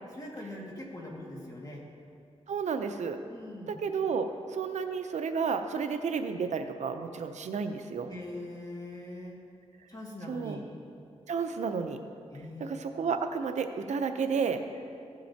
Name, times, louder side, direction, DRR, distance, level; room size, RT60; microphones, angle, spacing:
voice 1, 0.1-1.8 3.3-3.8 8.1-9.4 9.9-10.6 12.3-12.9, left 1 dB, 30° left, -2 dB, 2.0 m, -42 dB
voice 2, 2.5-3.2 3.8-8.1 10.3-10.6 11.3-12.0 12.6-14.6, right 5 dB, 85° right, 7 dB, 0.6 m, -31 dB
15.5 x 7.5 x 2.8 m, 2.4 s
wide cardioid pair, 80°, 12 cm